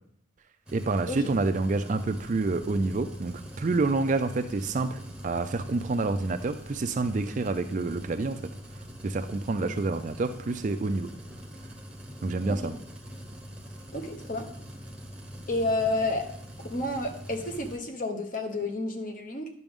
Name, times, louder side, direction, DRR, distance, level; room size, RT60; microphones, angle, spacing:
sound 1, 0.7-17.8, equal, 5° right, 0.9 m, -44 dB
voice 1, 0.7-8.4 9.0-11.1 12.2-12.8, right 3 dB, 35° right, 9 dB, 0.4 m, -28 dB
voice 2, 13.9-14.5 15.5-16.3 16.7-19.5, left 2 dB, 40° left, 5 dB, 0.9 m, -30 dB
10.5 x 6.0 x 3.6 m, 0.71 s
head